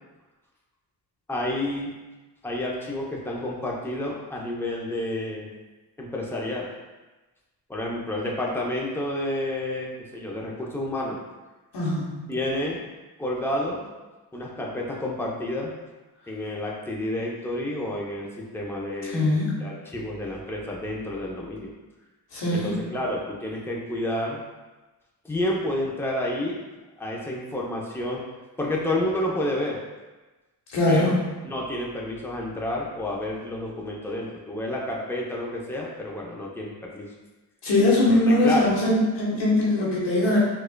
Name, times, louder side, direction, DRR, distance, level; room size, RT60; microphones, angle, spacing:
voice 1, 1.3-1.9 2.4-5.5 6.0-6.7 7.7-11.2 12.3-12.8 13.2-13.9 14.3-15.7 16.3-21.7 22.5-24.4 25.2-26.6 27.0-28.2 28.6-29.8 30.9-31.2 31.4-37.1 38.0-38.7, left 1 dB, 5° left, -3 dB, 0.7 m, -30 dB
voice 2, 11.7-12.3 19.1-19.5 22.3-22.7 30.7-31.2 37.6-40.4, left 1 dB, 90° left, -5 dB, 1.0 m, -21 dB
4.6 x 2.4 x 2.2 m, 1.2 s
cardioid pair, 50°, 42 cm